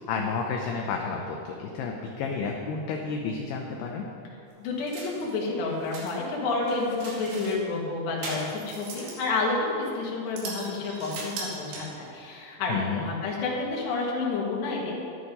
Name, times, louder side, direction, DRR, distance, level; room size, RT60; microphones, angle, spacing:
voice 1, 0.0-4.1 12.7-13.0, left 5 dB, 85° left, 1 dB, 2.3 m, -31 dB
voice 2, 4.6-15.0, left 3 dB, 60° left, -3 dB, 3.9 m, -30 dB
sound 1, 4.9-5.3 5.7-6.1 6.6-7.6 8.2-9.3 9.7-9.9 10.4-12.1, right 3 dB, 70° right, 4.5 m, -39 dB
13.0 x 11.0 x 5.4 m, 2.5 s
omnidirectional pair, 5.8 m